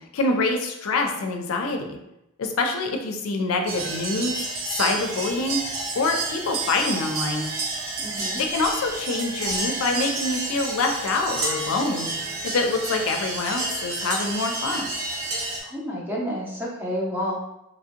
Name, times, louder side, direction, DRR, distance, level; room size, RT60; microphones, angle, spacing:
voice 1, 0.1-2.0 2.4-5.6 6.0-7.5 8.4-12.1 12.4-14.9, left 3 dB, 85° left, 4 dB, 0.4 m, -25 dB
sound 1, 3.7-15.6, right 2 dB, 85° right, 0.7 m, -30 dB
voice 2, 8.0-8.4 15.6-17.4, equal, 10° right, -5 dB, 0.6 m, -30 dB
3.0 x 2.7 x 2.5 m, 0.89 s
head